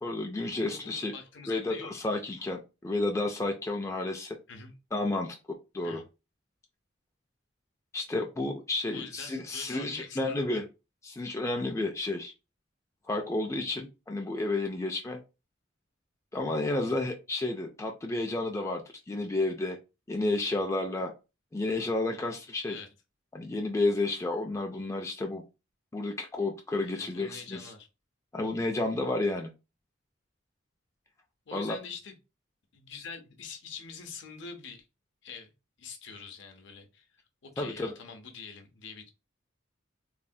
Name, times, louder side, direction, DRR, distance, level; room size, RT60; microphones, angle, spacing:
voice 1, 0.0-1.1 1.5-4.4 4.9-5.4 5.7-6.0 7.9-10.6 11.0-12.3 13.1-15.2 16.3-19.8 20.1-21.1 21.5-22.8 23.3-25.4 25.9-27.7 28.3-29.5 31.5-31.8 37.6-37.9, left 2 dB, 15° left, 2 dB, 0.3 m, -31 dB
voice 2, 0.6-1.9 4.5-4.7 5.8-6.0 8.9-10.6 16.8-16.9 22.7-22.9 26.9-27.9 31.5-32.1 32.7-34.9 35.2-35.5 35.8-37.1 37.4-39.1, left 5 dB, 60° left, 6 dB, 0.6 m, -45 dB
3.1 x 2.1 x 2.6 m, 0.28 s
head